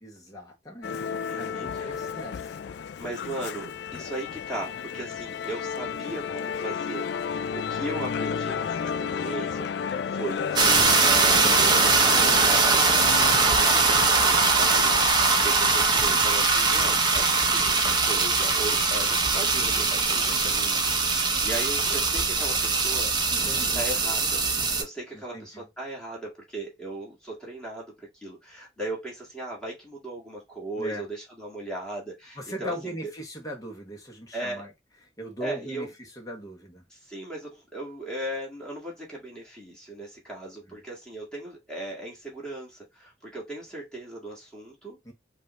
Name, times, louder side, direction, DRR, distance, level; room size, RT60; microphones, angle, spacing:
voice 1, 0.0-2.6 6.0-6.2 7.6-7.8 14.0-14.6 15.5-15.7 19.0-19.1 23.3-23.8 25.1-25.6 30.8-31.0 32.4-34.7 35.2-36.8 40.7-40.8 45.0-45.1, right 1 dB, 20° left, 1.4 m, -40 dB
Musical instrument, 0.8-15.5, left 6 dB, 65° left, 0.3 m, -33 dB
voice 2, 1.2-1.9 3.0-21.1 21.4-23.1 23.7-24.4 24.8-32.9 34.3-34.6 35.4-35.9 36.9-45.0, right 1 dB, 5° left, 1.9 m, -37 dB
sound 1, 10.6-24.8, right 4 dB, 25° right, 0.8 m, -22 dB
5.3 x 2.7 x 3.0 m
head